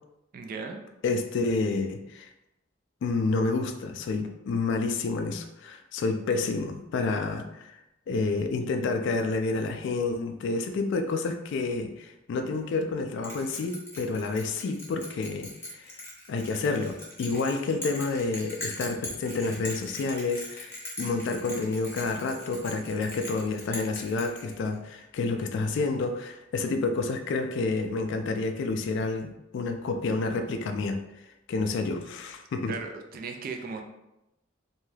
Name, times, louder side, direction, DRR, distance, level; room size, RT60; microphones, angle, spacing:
voice 1, 0.3-0.8 32.7-33.8, right 4 dB, 45° right, 4 dB, 0.4 m, -36 dB
voice 2, 1.0-2.3 3.0-7.8 8.1-16.0 16.3-20.7 21.0-31.0 31.5-32.7, left 3 dB, 65° left, 5 dB, 0.3 m, -29 dB
Bell, 13.2-24.9, left 1 dB, 15° left, 0.8 m, -40 dB
2.6 x 2.3 x 3.2 m, 0.91 s
head